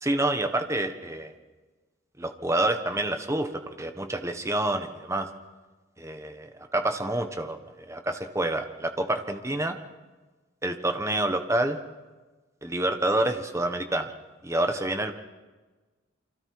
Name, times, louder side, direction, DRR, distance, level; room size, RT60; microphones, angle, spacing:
voice 1, 0.0-1.3 2.2-3.5 3.8-5.3 6.0-7.6 7.9-9.8 10.6-11.8 12.6-14.1 14.4-15.1, right 1 dB, 15° right, 7 dB, 1.3 m, -27 dB
30.0 x 25.0 x 4.9 m, 1.3 s
head